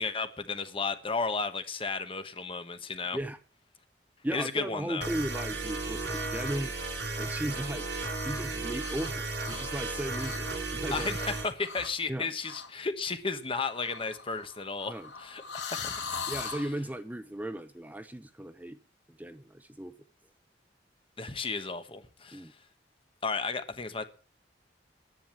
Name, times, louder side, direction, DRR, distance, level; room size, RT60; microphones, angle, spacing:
voice 1, 0.0-3.2 4.3-5.1 10.9-16.0 21.2-22.4 23.2-24.0, left 4 dB, 30° left, 1.2 m, -33 dB
voice 2, 4.2-6.7 7.2-7.9 8.2-11.4 12.1-12.3 14.9-15.1 16.3-18.8 19.1-19.9 22.3-22.5, right 1 dB, 10° right, 0.6 m, -36 dB
sound 1, 5.0-11.5, right 3 dB, 85° right, 4.2 m, -35 dB
sound 2, 8.7-9.1 9.4-10.6 10.9-11.2 11.6-12.0 12.4-12.7 13.7-16.7, left 5 dB, 85° left, 2.7 m, -40 dB
10.5 x 9.5 x 7.7 m
head